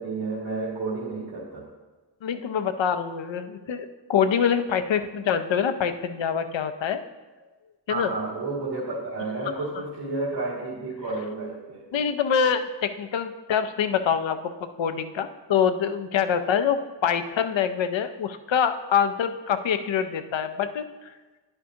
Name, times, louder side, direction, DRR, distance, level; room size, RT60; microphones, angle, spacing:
voice 1, 0.0-1.7 7.9-11.8, right 3 dB, 60° right, -7 dB, 2.2 m, -31 dB
voice 2, 2.2-7.0 7.9-8.1 11.9-20.8, left 7 dB, 75° left, 9 dB, 0.6 m, -25 dB
10.0 x 6.8 x 2.8 m, 1.2 s
cardioid pair, 45°, 45 cm